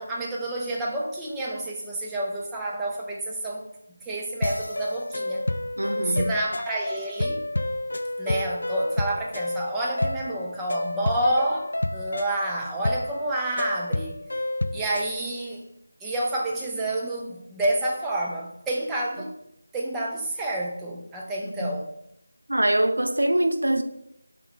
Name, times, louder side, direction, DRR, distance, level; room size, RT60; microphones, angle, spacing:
voice 1, 0.0-3.6 4.0-5.4 5.9-7.4 8.2-14.2 14.7-15.7 16.0-19.3 19.7-21.9, right 1 dB, 5° right, 0.5 m, -29 dB
sound 1, 4.4-15.1, left 1 dB, 60° left, 0.3 m, -29 dB
voice 2, 5.8-6.3 21.4-21.7 22.5-23.8, right 1 dB, 70° right, 0.5 m, -23 dB
4.4 x 3.1 x 3.5 m
figure-of-eight pair, 165°, 0 cm